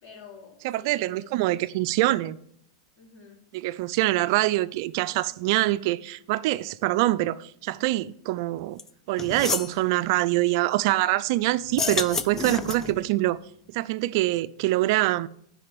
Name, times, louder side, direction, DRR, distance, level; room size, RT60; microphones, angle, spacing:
voice 1, 0.0-1.5 3.0-3.5, left 5 dB, 50° left, 3.9 m, -50 dB
voice 2, 0.6-2.4 3.5-8.8 9.1-13.4 13.7-15.3, right 17 dB, 55° right, 0.4 m, -25 dB
sound 1, 8.8-8.9 9.2-9.7 11.7-13.0, left 5 dB, 15° left, 0.5 m, -29 dB
9.8 x 4.9 x 5.3 m
supercardioid pair, 140°, 2 cm